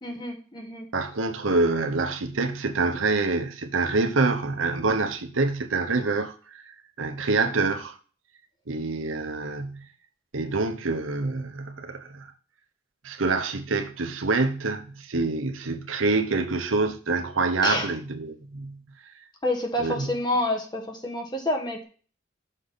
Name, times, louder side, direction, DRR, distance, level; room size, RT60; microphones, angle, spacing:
voice 1, 0.0-0.9 7.4-7.5 17.6-17.9 19.4-21.8, left 1 dB, 20° left, 1.3 m, -28 dB
voice 2, 0.9-6.4 6.7-7.9 8.7-9.9 10.3-12.3 13.0-18.8 19.8-20.1, right 3 dB, 90° right, 0.9 m, -26 dB
6.4 x 5.5 x 4.0 m
head